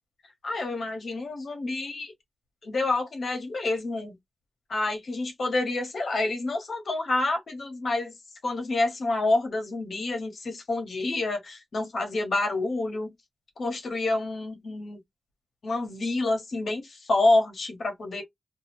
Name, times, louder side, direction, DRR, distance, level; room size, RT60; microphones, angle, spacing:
voice 1, 0.4-2.1 2.6-4.2 4.7-8.1 8.4-13.1 13.6-15.0 15.6-18.2, left 2 dB, 70° left, 1.1 m, -28 dB
2.4 x 2.3 x 2.9 m
cardioid pair, 65°, 0 cm